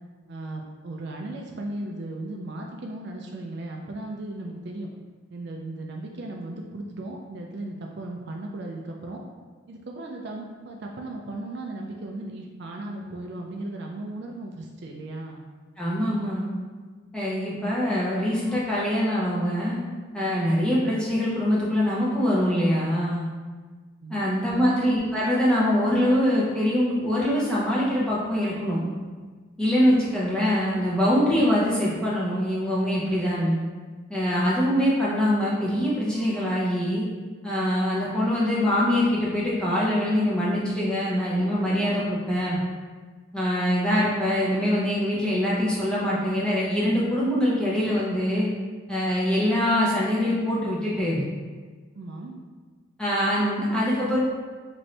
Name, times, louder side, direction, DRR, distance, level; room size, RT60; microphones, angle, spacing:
voice 1, 0.3-4.9 5.3-9.2 9.7-15.4 24.0-24.8 52.0-52.3, right 2 dB, 50° right, 1 dB, 0.3 m, -36 dB
voice 2, 15.8-16.5 17.1-19.8 20.1-23.3 24.1-28.8 29.6-33.6 34.1-37.0 37.4-42.6 43.3-48.5 48.9-51.2 53.0-54.2, equal, 5° left, -7 dB, 0.7 m, -23 dB
4.0 x 2.6 x 3.2 m, 1.4 s
head